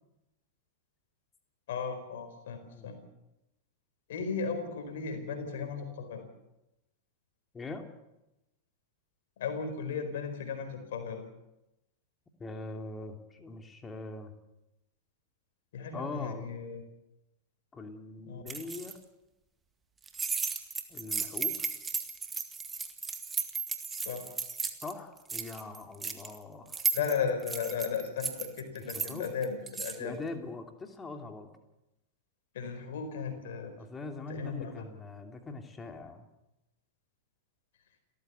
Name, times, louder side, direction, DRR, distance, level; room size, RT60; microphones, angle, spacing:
voice 1, 1.7-3.0 4.1-6.2 9.4-11.2 15.7-16.8 18.3-18.6 24.0-24.3 26.9-30.2 32.5-33.7 34.3-34.8, left 6 dB, 60° left, 7 dB, 4.5 m, -35 dB
voice 2, 12.4-14.3 15.9-16.5 17.7-19.0 20.9-21.7 24.8-26.8 28.9-29.3 30.0-31.6 33.8-36.3, left 3 dB, 15° left, 5 dB, 2.9 m, -42 dB
sound 1, 18.5-18.9 20.0-24.9 25.2-26.4 26.7-30.0, right 5 dB, 15° right, 2.0 m, -35 dB
29.5 x 14.5 x 7.0 m, 0.91 s
figure-of-eight pair, 90°, 0 cm